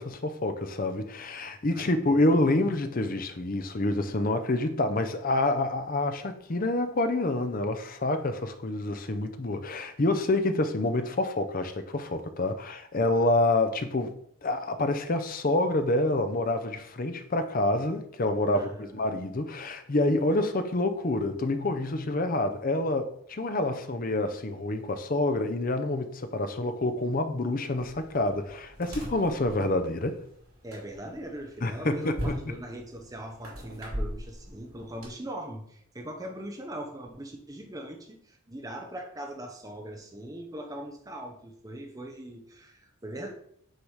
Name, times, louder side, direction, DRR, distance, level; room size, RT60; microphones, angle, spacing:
voice 1, 0.0-14.1 14.4-30.2 31.6-32.4, left 2 dB, 40° left, 0.6 m, -27 dB
voice 2, 1.7-2.2 18.5-19.2 30.6-43.3, right 1 dB, 15° right, 0.8 m, -40 dB
sound 1, 27.8-35.1, equal, 75° right, 2.7 m, -40 dB
6.4 x 4.1 x 4.7 m
head